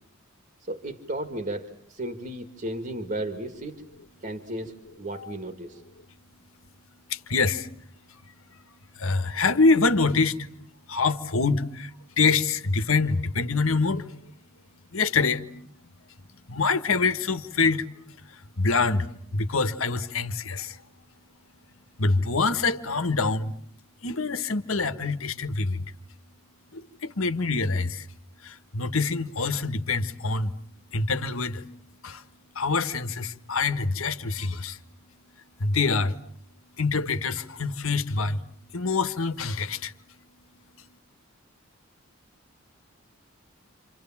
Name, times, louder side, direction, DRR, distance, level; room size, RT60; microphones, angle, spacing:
voice 1, 0.7-3.8 4.2-5.8, right 1 dB, 40° right, 2.1 m, -34 dB
voice 2, 7.1-7.7 8.1-8.2 8.9-10.5 10.9-14.1 14.9-15.4 16.5-17.8 18.3-20.8 22.0-23.5 24.0-25.9 26.7-28.1 28.4-30.5 30.9-31.6 32.0-32.2 32.5-34.8 35.6-36.2 36.8-38.4 38.7-39.9, left 4 dB, 75° left, 1.6 m, -25 dB
29.0 x 27.0 x 7.4 m
head